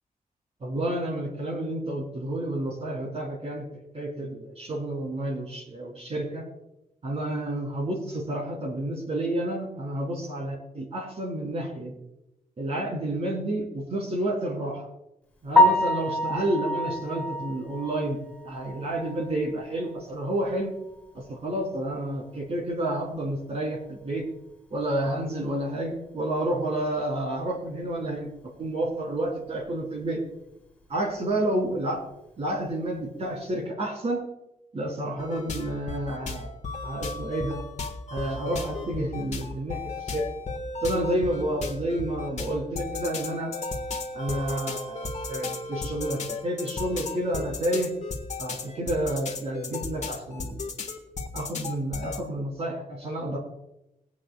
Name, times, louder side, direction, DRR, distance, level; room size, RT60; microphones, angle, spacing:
voice 1, 0.6-3.6 3.9-6.4 7.0-11.9 12.6-14.9 15.4-18.2 18.4-20.7 21.1-24.2 24.7-28.3 28.6-30.2 30.9-32.0 32.4-34.2 34.7-36.5 36.8-37.6 38.1-40.2 40.8-43.5 44.1-47.9 48.4-50.7 51.3-53.4, right 1 dB, 45° right, -1 dB, 3.3 m, -30 dB
Piano, 15.5-19.5 19.9-20.0 20.5-20.6 20.9-21.0 24.1-24.2 32.7-32.9, left 1 dB, 5° left, 2.8 m, -25 dB
sound 1, 35.2-52.2, left 3 dB, 50° left, 1.5 m, -35 dB
22.0 x 8.8 x 2.3 m, 0.87 s
wide cardioid pair, 160°, 15 cm